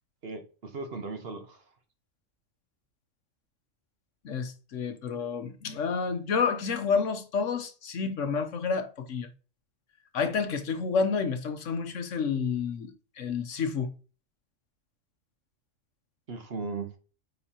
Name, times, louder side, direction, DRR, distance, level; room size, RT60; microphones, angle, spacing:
voice 1, 0.2-1.6 16.3-16.9, right 4 dB, 50° right, 1.1 m, -37 dB
voice 2, 4.2-9.3 10.1-13.9, left 5 dB, 70° left, 1.2 m, -29 dB
9.2 x 4.1 x 2.9 m
omnidirectional pair, 1.4 m